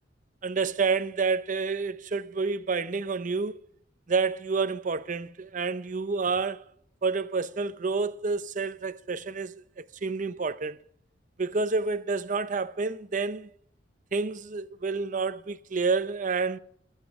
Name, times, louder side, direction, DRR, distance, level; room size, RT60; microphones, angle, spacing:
voice 1, 0.4-3.6 4.1-6.7 7.0-10.8 11.4-13.5 14.1-16.6, right 4 dB, 45° right, 0.6 m, -29 dB
24.5 x 9.0 x 3.6 m
head